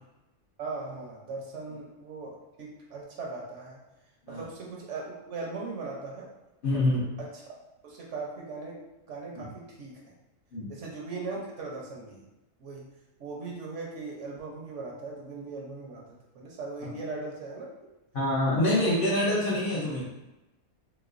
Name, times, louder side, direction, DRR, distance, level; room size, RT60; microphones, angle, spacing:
voice 1, 0.6-3.8 4.3-6.3 6.7-6.8 7.2-7.3 7.8-8.8 9.1-9.9 10.7-12.2 12.6-12.8 13.2-16.0 16.3-17.7 18.7-19.0, right 3 dB, 65° right, -2 dB, 0.9 m, -39 dB
voice 2, 6.6-7.0 9.4-9.5 10.5-10.7 18.1-20.1, left 1 dB, 55° left, -7 dB, 0.6 m, -26 dB
3.3 x 3.0 x 2.4 m, 1.0 s
omnidirectional pair, 1.5 m